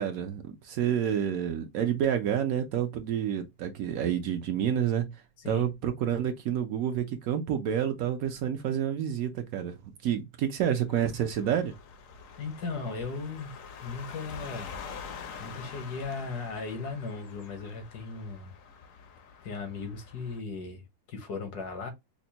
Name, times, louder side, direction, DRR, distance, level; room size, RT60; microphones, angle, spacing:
voice 1, 0.0-5.1 5.5-9.8 10.0-11.7, right 9 dB, 70° right, 1.0 m, -29 dB
sound 1, 10.9-20.4, left 6 dB, 65° left, 0.9 m, -46 dB
voice 2, 12.4-13.5 13.8-14.7 15.4-18.5 19.4-20.8 21.1-21.9, left 4 dB, 85° left, 1.7 m, -37 dB
5.1 x 2.0 x 2.8 m
omnidirectional pair, 1.7 m